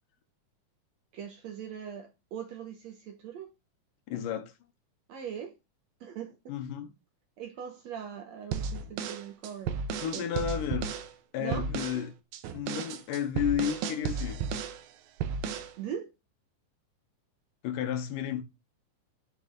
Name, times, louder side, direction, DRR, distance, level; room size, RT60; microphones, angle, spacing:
voice 1, 1.1-3.5 5.1-5.5 6.0-6.6 7.4-9.8 10.1-10.5 11.4-11.7 15.8-16.1, right 8 dB, 65° right, 1.8 m, -41 dB
voice 2, 4.1-4.5 6.5-6.9 10.0-10.9 11.3-12.1 12.5-14.4 17.6-18.4, left 9 dB, 75° left, 2.4 m, -32 dB
sound 1, 8.5-11.1 11.5-12.0 12.3-14.8 15.2-15.7, right 6 dB, 85° right, 2.8 m, -33 dB
9.6 x 6.2 x 3.9 m
omnidirectional pair, 4.1 m